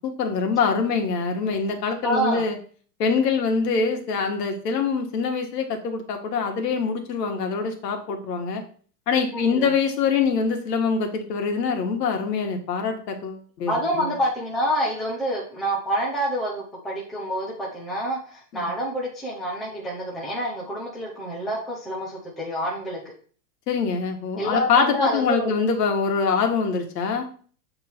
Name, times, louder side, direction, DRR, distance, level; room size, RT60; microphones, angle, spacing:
voice 1, 0.0-2.6 3.0-8.6 9.1-14.1 18.5-18.7 23.7-27.3, left 5 dB, 80° left, 4 dB, 1.7 m, -24 dB
voice 2, 2.0-2.4 9.3-9.7 13.7-23.0 24.4-25.5, equal, ahead, -5 dB, 0.5 m, -27 dB
8.0 x 3.6 x 4.4 m, 0.44 s
supercardioid pair, 170°, 48 cm